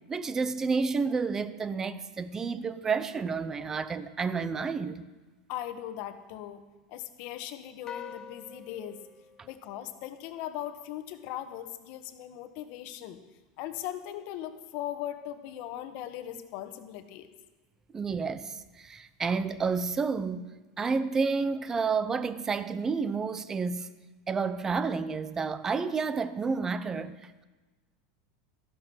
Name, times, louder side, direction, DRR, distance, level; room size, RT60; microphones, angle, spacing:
voice 1, 0.1-5.1 17.9-20.5 20.8-23.9 24.3-27.4, right 5 dB, 15° right, 0.6 m, -30 dB
voice 2, 5.5-6.6 6.9-9.0 9.4-13.2 13.6-17.3, left 12 dB, 55° left, 1.3 m, -39 dB
sound 1, 7.9-10.4, left 6 dB, 25° left, 0.6 m, -46 dB
13.5 x 11.5 x 6.2 m
supercardioid pair, 145°, 3 cm